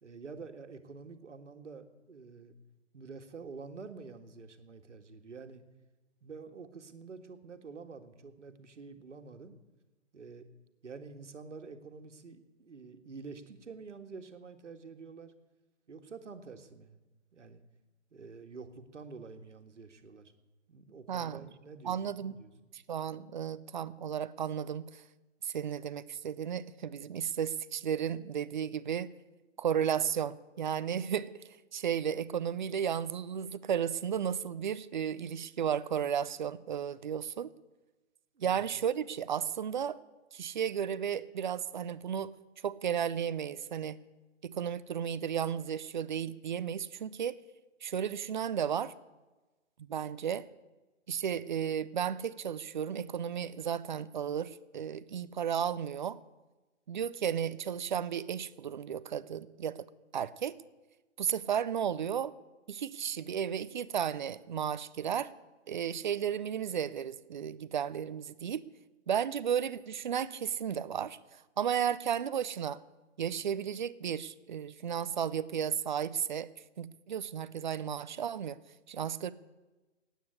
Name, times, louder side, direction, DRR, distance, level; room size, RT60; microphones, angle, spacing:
voice 1, 0.0-2.6 2.9-5.6 6.2-9.6 10.1-10.5 10.8-15.3 15.9-17.0 17.3-17.6 18.1-20.3 20.7-22.5 38.4-38.7, right 4 dB, 75° right, 7 dB, 1.9 m, -48 dB
voice 2, 21.1-21.5 21.8-22.3 22.7-25.0 25.4-29.1 29.6-31.3 31.7-37.5 38.4-40.0 40.3-42.3 42.6-44.0 44.4-47.4 47.8-48.9 49.9-50.5 51.1-56.2 56.9-59.9 60.1-60.6 61.2-62.3 62.7-65.3 65.7-68.6 69.1-72.8 73.2-76.5 76.8-78.6 78.9-79.3, right 8 dB, 40° right, 17 dB, 0.6 m, -34 dB
15.0 x 9.3 x 9.6 m, 1.2 s
hypercardioid pair, 150°, 36 cm